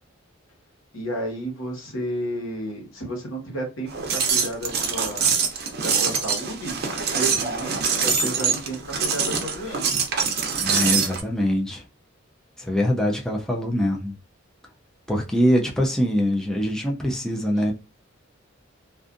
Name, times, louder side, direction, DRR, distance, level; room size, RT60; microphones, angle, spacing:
voice 1, 0.9-5.4 5.8-6.8 7.1-10.0 17.6-17.7, equal, 85° left, 1.2 m, -32 dB
sound 1, 3.9-11.2, right 6 dB, 55° right, 0.6 m, -24 dB
voice 2, 10.5-11.8 12.6-14.1 15.1-17.7, equal, 5° left, 0.4 m, -23 dB
2.5 x 2.4 x 2.5 m
head